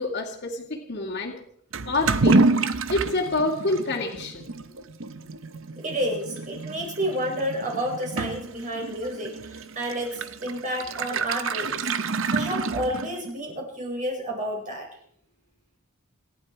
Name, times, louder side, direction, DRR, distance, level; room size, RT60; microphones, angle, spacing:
voice 1, 0.0-1.3 1.9-2.4 2.9-4.4, left 2 dB, 50° left, -5 dB, 2.4 m, -27 dB
Toilet flush / Liquid, 1.7-13.4, right 3 dB, 60° right, 0.9 m, -28 dB
voice 2, 5.8-11.9 12.3-14.9, equal, 35° right, -1 dB, 5.4 m, -30 dB
26.5 x 11.0 x 4.8 m, 0.69 s
head